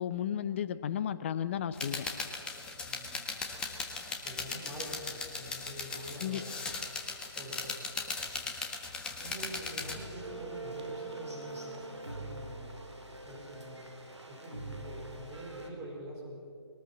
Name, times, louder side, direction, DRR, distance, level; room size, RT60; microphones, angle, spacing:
voice 1, 0.0-2.0 6.2-6.4, left 9 dB, 25° left, 14 dB, 0.7 m, -33 dB
sound 1, 1.7-9.9, left 4 dB, 5° left, 1.4 m, -38 dB
voice 2, 2.9-3.3 4.2-6.8 7.4-8.0 9.2-12.7 13.2-13.9 14.3-16.4, right 1 dB, 15° right, -3 dB, 5.4 m, -45 dB
sound 2, 9.8-15.7, right 2 dB, 90° right, 3.4 m, -44 dB
22.0 x 19.0 x 7.5 m, 2.3 s
figure-of-eight pair, 150°, 14 cm